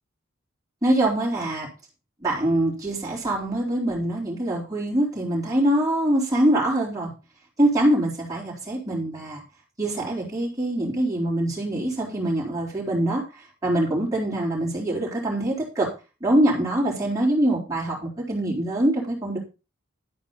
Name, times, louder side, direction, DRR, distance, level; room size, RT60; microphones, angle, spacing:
voice 1, 0.8-1.7 2.2-7.1 7.6-9.4 9.8-13.2 13.6-15.9 16.2-19.4, right 1 dB, 15° right, -6 dB, 4.3 m, -24 dB
11.5 x 9.3 x 4.1 m, 0.31 s
head